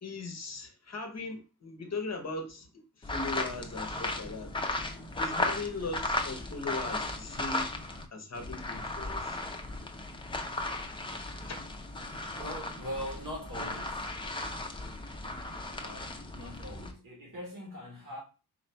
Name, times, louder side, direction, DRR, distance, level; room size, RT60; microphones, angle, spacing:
voice 1, 0.0-4.6 5.1-7.7 8.1-9.4 11.5-11.6, left 3 dB, 45° left, 0.9 m, -39 dB
sound 1, 3.0-8.1 8.3-16.9, left 2 dB, 15° left, 0.5 m, -36 dB
voice 2, 12.4-14.2 15.8-18.2, equal, 55° right, 1.4 m, -42 dB
4.2 x 2.4 x 4.3 m
wide cardioid pair, 170°, 37 cm